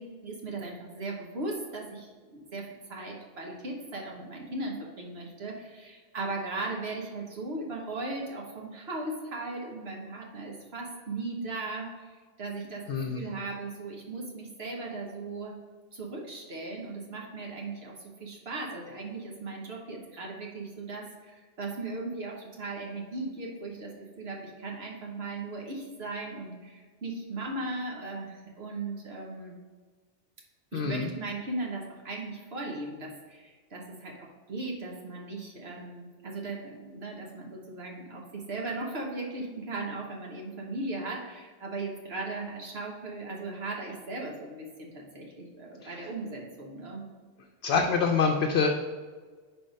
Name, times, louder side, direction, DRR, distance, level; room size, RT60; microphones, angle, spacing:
voice 1, 0.0-15.6 15.9-29.6 30.7-47.1, right 2 dB, 65° right, -1 dB, 1.2 m, -37 dB
voice 2, 12.9-13.2 30.7-31.1 45.8-46.1 47.6-48.7, left 5 dB, 70° left, 3 dB, 0.8 m, -26 dB
5.5 x 4.1 x 5.1 m, 1.5 s
omnidirectional pair, 1.2 m